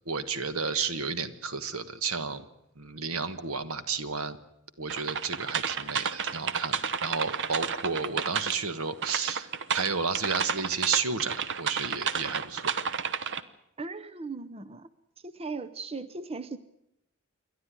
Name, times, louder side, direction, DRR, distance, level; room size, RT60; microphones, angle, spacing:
voice 1, 0.1-2.4 2.8-4.4 4.8-12.7, right 5 dB, 80° right, 12 dB, 1.4 m, -32 dB
sound 1, 4.9-8.7 9.0-13.4, right 6 dB, 60° right, 1.0 m, -31 dB
voice 2, 13.8-14.9 15.2-16.6, right 3 dB, 30° right, 12 dB, 0.7 m, -38 dB
28.0 x 12.0 x 9.7 m, 0.82 s
head